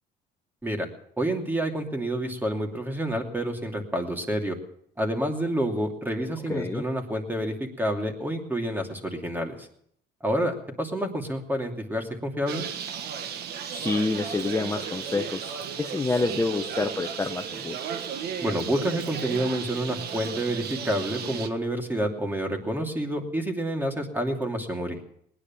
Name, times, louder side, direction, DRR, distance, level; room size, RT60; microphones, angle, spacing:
voice 1, 1.2-4.6 5.0-9.7 10.2-12.7 18.4-25.0, right 1 dB, 10° right, 3 dB, 2.8 m, -28 dB
voice 2, 6.4-6.8 13.7-17.8, left 3 dB, 15° left, 5 dB, 0.8 m, -28 dB
Bird, 12.5-21.5, right 7 dB, 70° right, 1.5 m, -34 dB
19.5 x 10.0 x 7.2 m, 0.70 s
cardioid pair, 110°, 17 cm